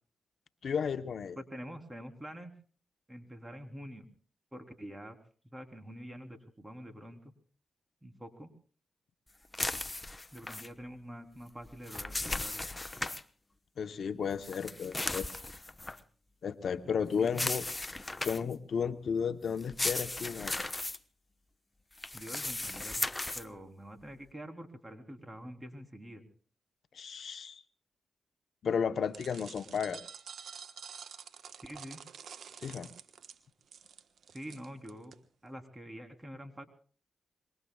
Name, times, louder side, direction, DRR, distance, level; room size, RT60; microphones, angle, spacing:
voice 1, 0.6-1.4 13.8-15.3 16.4-17.6 18.2-20.5 26.9-27.6 28.6-30.0 32.6-32.9, left 6 dB, 70° left, 10 dB, 0.9 m, -33 dB
voice 2, 1.4-2.5 3.1-4.1 4.5-5.2 5.5-7.3 8.0-8.5 10.3-12.7 17.0-17.6 22.1-23.0 23.3-26.2 31.5-32.0 34.3-35.1 35.4-36.7, equal, 20° right, 5 dB, 3.5 m, -46 dB
sound 1, 9.5-10.7 11.6-13.2 14.4-16.0 17.3-18.5 19.6-21.0 22.0-23.4, left 2 dB, 25° left, 1.0 m, -36 dB
sound 2, 29.1-35.2, right 7 dB, 75° right, 1.2 m, -49 dB
26.0 x 23.0 x 2.4 m, 0.41 s
supercardioid pair, 50°, 0 cm